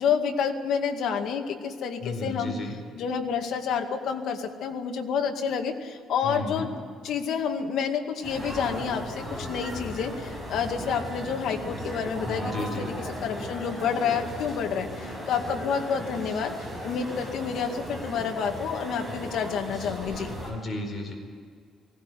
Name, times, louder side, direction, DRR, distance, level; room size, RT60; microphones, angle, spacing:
voice 1, 0.0-2.6 3.0-6.7 7.0-12.5 12.8-12.9 13.2-16.5 16.8-20.3, left 6 dB, 65° left, 4 dB, 2.1 m, -29 dB
voice 2, 2.0-2.8 6.2-6.7 12.2-12.9 20.4-21.1, left 2 dB, 25° left, 1 dB, 4.8 m, -33 dB
sound 1, 8.2-20.5, equal, ahead, 5.9 m, -36 dB
19.5 x 17.5 x 9.3 m, 2.1 s
cardioid pair, 160°, 0 cm